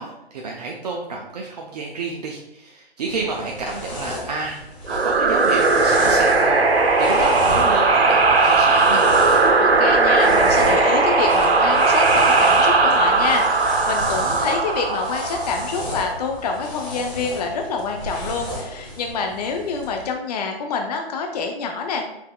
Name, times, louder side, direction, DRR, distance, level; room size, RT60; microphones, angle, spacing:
voice 1, 0.0-4.6 4.9-9.1, right 3 dB, 40° right, -1 dB, 0.5 m, -30 dB
sound 1, 3.1-20.1, left 1 dB, 15° left, 1.1 m, -33 dB
sound 2, 4.9-16.2, right 3 dB, 85° right, 0.8 m, -17 dB
voice 2, 9.6-22.1, left 4 dB, 40° left, 3 dB, 0.5 m, -27 dB
5.7 x 3.4 x 2.2 m, 0.84 s
figure-of-eight pair, 140°, 31 cm